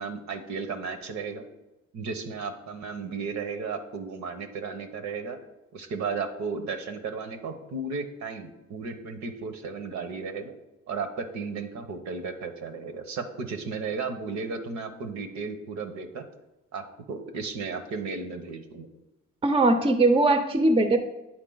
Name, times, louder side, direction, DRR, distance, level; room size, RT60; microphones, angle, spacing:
voice 1, 0.0-1.4 1.9-5.4 5.7-10.5 10.9-16.3 16.7-18.9, right 4 dB, 65° right, 8 dB, 0.9 m, -34 dB
voice 2, 19.4-21.0, right 2 dB, 20° right, 8 dB, 0.6 m, -20 dB
9.1 x 3.9 x 3.9 m, 0.98 s
cardioid pair, 90°, 30 cm